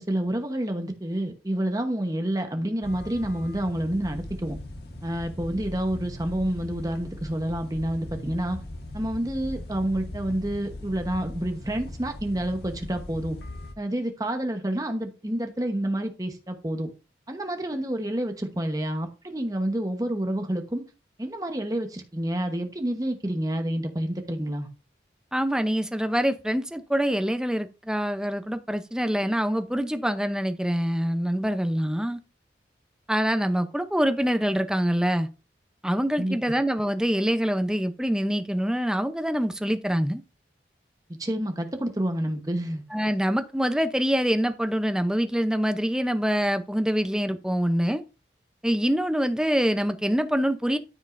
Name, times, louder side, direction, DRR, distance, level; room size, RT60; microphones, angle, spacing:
voice 1, 0.0-4.6 5.0-8.6 8.9-13.4 13.8-16.9 17.3-20.8 21.2-24.7 36.2-36.4 41.2-42.8, right 1 dB, 20° right, 1.0 m, -28 dB
sound 1, 2.8-13.7, left 1 dB, 60° left, 1.5 m, -39 dB
voice 2, 25.3-32.2 33.1-35.3 35.8-40.2 42.9-48.0 48.6-50.8, equal, 5° right, 0.6 m, -25 dB
13.0 x 5.3 x 2.6 m
head